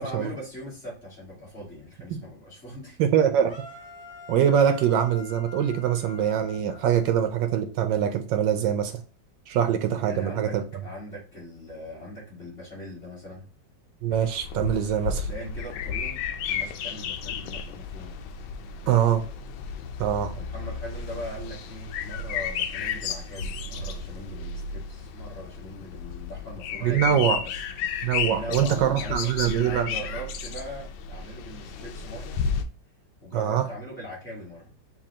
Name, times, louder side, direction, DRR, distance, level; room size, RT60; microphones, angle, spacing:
voice 1, 0.0-3.0 10.1-10.5 10.8-13.5 15.3-16.2 16.5-18.2 18.9-19.0 20.3-27.5 28.3-29.3 29.6-32.4 33.2-35.0, equal, 30° left, -6 dB, 2.4 m, -40 dB
voice 2, 3.0-3.5 4.3-9.0 9.5-10.6 14.0-15.3 18.9-19.2 20.0-20.3 26.8-27.4 28.0-29.9 33.3-33.6, right 9 dB, 80° right, 7 dB, 1.3 m, -23 dB
sound 1, 3.4-7.5, left 3 dB, 50° left, 2.5 m, -45 dB
sound 2, 14.1-32.6, left 6 dB, 90° left, 1.3 m, -33 dB
7.0 x 2.7 x 2.8 m, 0.36 s
omnidirectional pair, 2.0 m